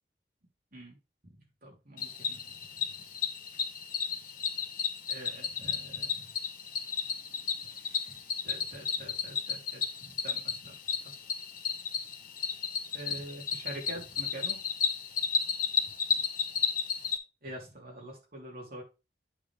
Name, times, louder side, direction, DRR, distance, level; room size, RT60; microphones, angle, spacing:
voice 1, 1.2-2.6 5.1-6.3 7.6-11.2 12.9-14.6 16.1-16.2 17.4-18.8, right 1 dB, 60° right, -1 dB, 3.4 m, -46 dB
Cricket, 2.0-17.2, left 6 dB, 55° left, 1.3 m, -33 dB
8.6 x 6.1 x 3.4 m, 0.28 s
head